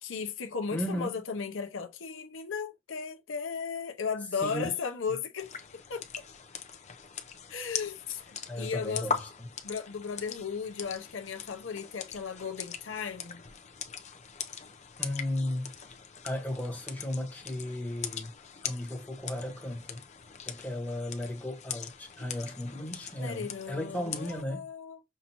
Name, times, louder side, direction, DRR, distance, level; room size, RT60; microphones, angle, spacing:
voice 1, 0.0-5.6 5.9-6.2 7.5-9.1 9.6-13.4 23.2-25.0, left 5 dB, 75° left, 0.7 m, -36 dB
voice 2, 0.7-1.1 4.4-4.7 8.5-9.5 15.0-15.7 16.2-18.3 18.6-20.0 20.4-24.7, left 1 dB, 10° left, 1.3 m, -35 dB
sound 1, 5.4-24.4, left 7 dB, 35° left, 0.5 m, -41 dB
5.6 x 2.6 x 2.9 m
head